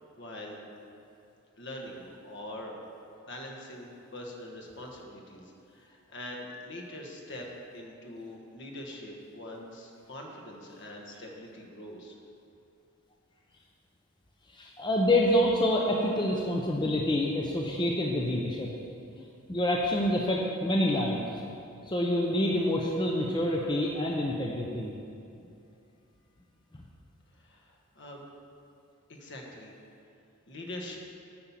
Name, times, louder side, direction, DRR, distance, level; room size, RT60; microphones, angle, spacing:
voice 1, 0.1-0.6 1.6-2.8 3.3-7.5 7.7-12.1 27.3-28.2 29.1-29.8 30.5-31.0, left 1 dB, 55° left, 0 dB, 1.3 m, -43 dB
voice 2, 14.5-18.7 19.2-21.2 21.9-24.9, left 1 dB, 20° left, -1 dB, 0.6 m, -27 dB
8.6 x 5.6 x 7.3 m, 2.6 s
head